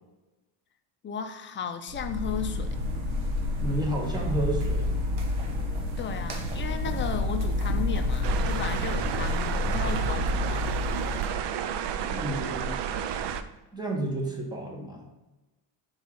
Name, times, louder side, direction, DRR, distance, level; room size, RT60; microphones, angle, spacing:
voice 1, 1.0-2.7 6.0-10.7, left 7 dB, 25° left, 6 dB, 0.5 m, -35 dB
sound 1, 1.9-11.2, left 2 dB, 85° right, 1.4 m, -29 dB
voice 2, 3.6-4.9 12.0-12.8 13.7-15.1, right 1 dB, 10° right, 1 dB, 1.0 m, -31 dB
sound 2, 8.2-13.4, right 8 dB, 60° right, 0.5 m, -31 dB
4.8 x 4.2 x 5.7 m, 1.1 s
cardioid pair, 155°, 46 cm